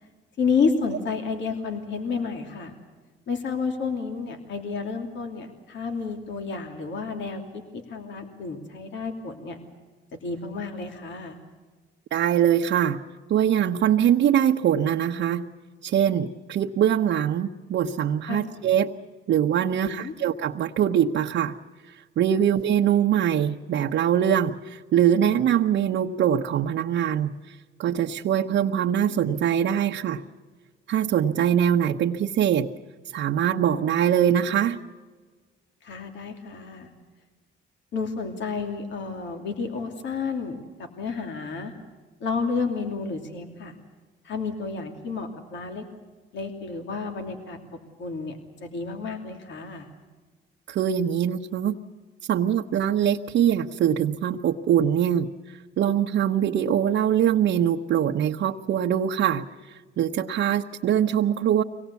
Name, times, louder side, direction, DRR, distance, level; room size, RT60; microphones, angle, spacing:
voice 1, 0.4-2.8 3.3-9.6 10.2-11.4 18.3-18.5 19.7-20.1 35.8-36.9 37.9-41.7 42.2-43.8 44.2-45.8 46.3-47.6 48.0-49.9, left 5 dB, 65° left, 4 dB, 2.9 m, -30 dB
voice 2, 12.1-13.0 13.3-15.5 15.8-18.9 19.3-21.6 21.9-30.2 30.9-32.7 33.1-34.8 50.7-51.8 52.3-61.6, right 9 dB, 70° right, 1 dB, 1.0 m, -23 dB
25.0 x 18.5 x 8.3 m, 1.4 s
cardioid pair, 90°, 20 cm